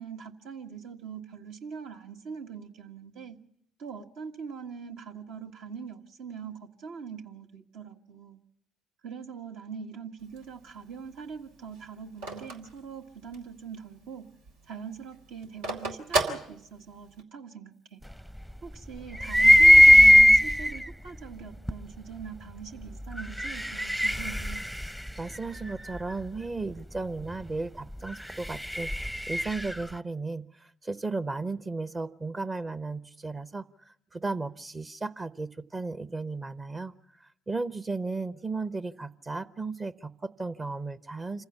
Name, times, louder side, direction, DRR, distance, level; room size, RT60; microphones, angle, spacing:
voice 1, 0.0-3.4 3.8-8.4 9.0-14.3 14.7-18.0 18.6-24.6, right 6 dB, 70° right, 4 dB, 1.7 m, -42 dB
Telephone, 10.2-13.6 14.0-14.1 14.3-17.2, right 2 dB, 85° right, 2.6 m, -33 dB
sound 1, 19.2-20.9 21.7-21.8 23.1-26.0 28.1-29.8, equal, 5° right, 0.7 m, -19 dB
voice 2, 25.2-28.9 29.3-36.9 37.2-41.5, right 3 dB, 30° right, 14 dB, 0.9 m, -35 dB
26.5 x 15.5 x 7.1 m, 0.71 s
hypercardioid pair, 55°, 0 cm